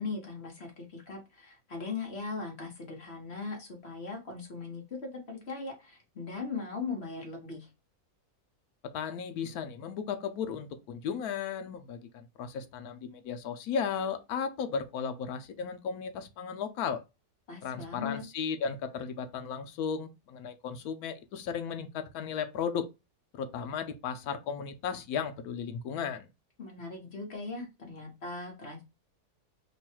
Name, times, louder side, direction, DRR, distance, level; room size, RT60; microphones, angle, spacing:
voice 1, 0.0-7.7 17.5-18.2 26.6-28.8, left 4 dB, 45° left, 1.3 m, -39 dB
voice 2, 8.8-17.0 17.6-22.9 23.3-26.3, left 6 dB, 85° left, 1.1 m, -35 dB
3.1 x 2.3 x 4.3 m
omnidirectional pair, 1.6 m